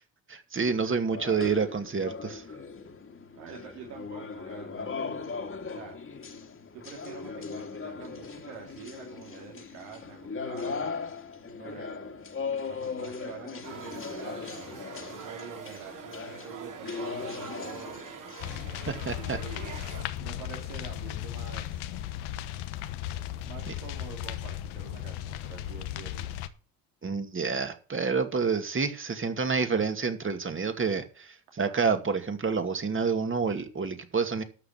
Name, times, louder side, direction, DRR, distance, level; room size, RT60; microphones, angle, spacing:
voice 1, 0.3-2.4 18.9-19.4 23.7-23.8 27.0-34.4, right 5 dB, 30° right, 2.4 m, -28 dB
voice 2, 0.8-1.8 3.3-5.2 5.7-6.0 6.7-10.9 11.6-12.1 12.6-18.0 19.1-22.1 23.4-26.4 31.6-31.7, right 6 dB, 75° right, 2.7 m, -47 dB
sound 1, 1.1-18.6, left 5 dB, 30° left, 2.3 m, -38 dB
sound 2, 13.6-20.0, right 6 dB, 50° right, 3.3 m, -44 dB
sound 3, 18.4-26.5, left 12 dB, 75° left, 1.2 m, -36 dB
13.0 x 5.9 x 7.4 m
hypercardioid pair, 60°, 39 cm